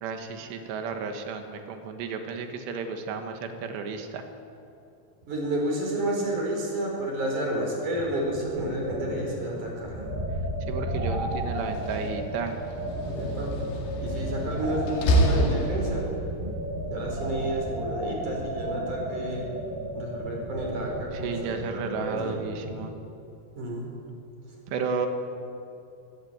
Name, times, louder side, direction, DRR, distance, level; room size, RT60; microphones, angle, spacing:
voice 1, 0.0-4.2 10.7-12.6 21.1-22.9 24.7-25.1, right 5 dB, 90° right, 6 dB, 3.7 m, -33 dB
voice 2, 5.3-10.1 13.1-13.5 14.0-16.1 16.9-19.5 19.9-22.7 23.5-23.9, right 1 dB, 45° right, -1 dB, 6.0 m, -31 dB
sound 1, 7.9-23.2, right 1 dB, 10° right, 6.3 m, -34 dB
Slam, 11.6-16.3, right 1 dB, 90° left, 4.5 m, -28 dB
22.5 x 16.0 x 8.9 m, 2.7 s
omnidirectional pair, 4.9 m